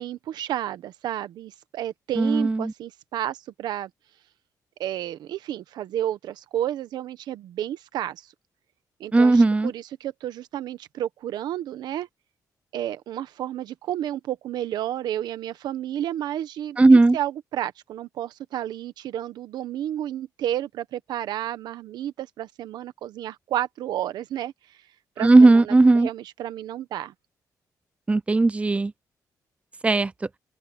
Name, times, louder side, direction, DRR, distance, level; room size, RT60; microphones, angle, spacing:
voice 1, 0.0-3.9 4.8-8.2 9.0-12.1 12.7-16.8 17.1-24.5 25.2-27.1, right 12 dB, 85° right, 1.2 m, -31 dB
voice 2, 2.2-2.7 9.1-9.7 16.8-17.2 25.2-26.1 28.1-28.9 29.8-30.1, right 3 dB, 20° right, 0.6 m, -16 dB
open air
cardioid pair, 100°, 7 cm